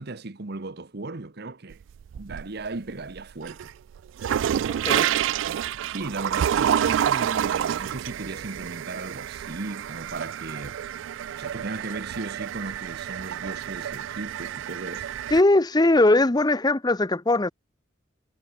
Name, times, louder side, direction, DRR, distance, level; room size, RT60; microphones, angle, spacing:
voice 1, 0.0-1.8 2.2-3.7 5.9-10.8 11.4-15.1, right 3 dB, 60° right, 1.1 m, -36 dB
sound 1, 1.7-2.7 3.1-15.4, right 9 dB, 80° right, 0.3 m, -28 dB
voice 2, 15.3-17.5, left 2 dB, 20° left, 0.7 m, -20 dB
head